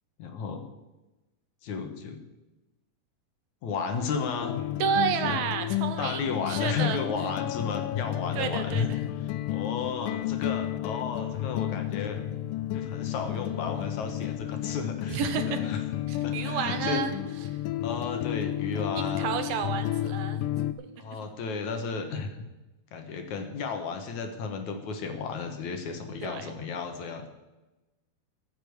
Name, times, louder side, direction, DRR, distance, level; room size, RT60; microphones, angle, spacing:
voice 1, 0.2-0.6 1.6-2.2 3.6-4.6 5.2-5.4 6.0-8.9 9.2-12.2 12.7-15.8 16.2-17.1 17.8-19.5 21.0-22.4 22.9-27.3, left 5 dB, 65° left, 6 dB, 2.4 m, -33 dB
sound 1, 4.4-20.7, left 13 dB, 80° left, 2.1 m, -32 dB
voice 2, 4.8-7.0 8.4-8.8 15.1-15.6 16.1-17.2 17.5-17.6 19.0-20.5 26.2-26.5, right 7 dB, 85° right, 8 dB, 2.9 m, -31 dB
14.5 x 7.1 x 7.9 m, 1.1 s
omnidirectional pair, 4.0 m